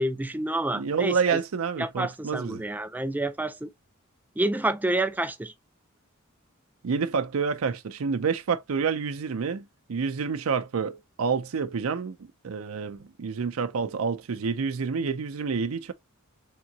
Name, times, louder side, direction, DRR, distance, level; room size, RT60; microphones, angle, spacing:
voice 1, 0.0-1.4 1.8-3.7 4.4-5.5, right 1 dB, 10° right, 0.4 m, -28 dB
voice 2, 0.7-2.6 6.8-12.2 12.4-15.9, right 5 dB, 70° right, 0.5 m, -28 dB
3.7 x 3.7 x 2.7 m
head